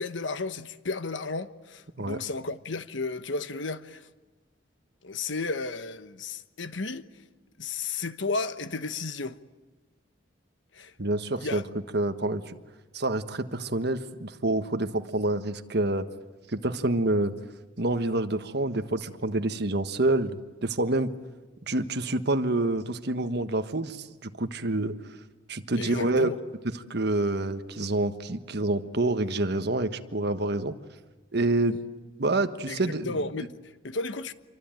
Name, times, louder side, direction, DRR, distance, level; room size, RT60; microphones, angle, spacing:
voice 1, 0.0-4.1 5.0-7.0 7.6-9.4 10.7-10.9 11.4-11.6 25.7-26.4 32.7-34.3, left 3 dB, 90° left, 1.2 m, -33 dB
voice 2, 11.0-11.6 11.9-12.6 12.9-16.1 16.5-17.3 17.8-21.1 21.7-25.0 25.5-26.3 26.7-30.7 31.3-31.8 32.2-33.3, right 2 dB, 60° right, 1.4 m, -27 dB
27.0 x 24.0 x 9.1 m
head